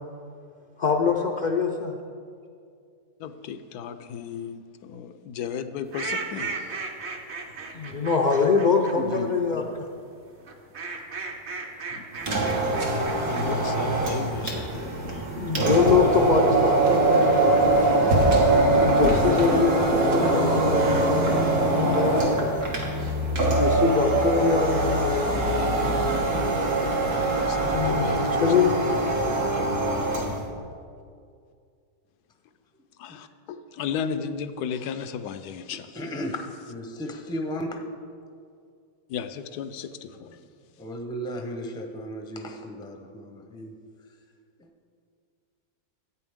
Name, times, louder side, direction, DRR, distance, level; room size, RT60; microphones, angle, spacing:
voice 1, 0.8-1.9 7.7-9.9 15.0-17.8 18.7-22.8 23.6-25.6 27.7-28.1 28.4-28.9, left 5 dB, 65° left, 1 dB, 0.4 m, -24 dB
voice 2, 3.2-6.5 11.9-12.1 12.4-13.0 13.3-15.3 27.4-28.7 29.2-29.7 33.0-35.9 39.1-40.4, left 7 dB, 90° left, 10 dB, 1.1 m, -35 dB
sound 1, 5.9-9.2 10.4-13.4, right 4 dB, 50° right, 1.1 m, -35 dB
voice 3, 8.9-9.7 22.6-22.7 33.1-33.2 35.7-37.9 40.2-40.4 40.8-43.7 44.6-44.7, equal, 5° left, 3 dB, 0.4 m, -35 dB
sound 2, 12.2-30.4, right 2 dB, 80° right, 2.0 m, -23 dB
13.5 x 9.0 x 3.6 m, 2.3 s
omnidirectional pair, 1.6 m